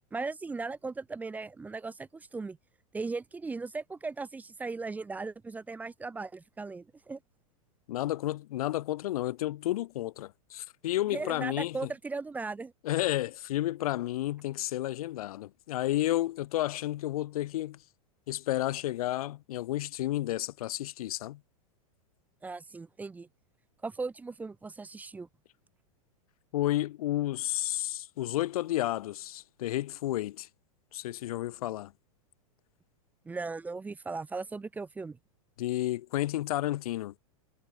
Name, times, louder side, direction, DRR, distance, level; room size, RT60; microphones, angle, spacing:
voice 1, 0.1-2.6 2.9-7.2 11.1-12.7 22.4-23.3 23.8-25.3 33.3-35.2, right 3 dB, 10° right, 0.5 m, -37 dB
voice 2, 7.9-11.9 12.8-17.8 18.3-21.4 26.5-30.5 30.9-31.9 35.6-37.1, left 15 dB, 75° left, 0.4 m, -31 dB
hypercardioid pair, 125°, 19 cm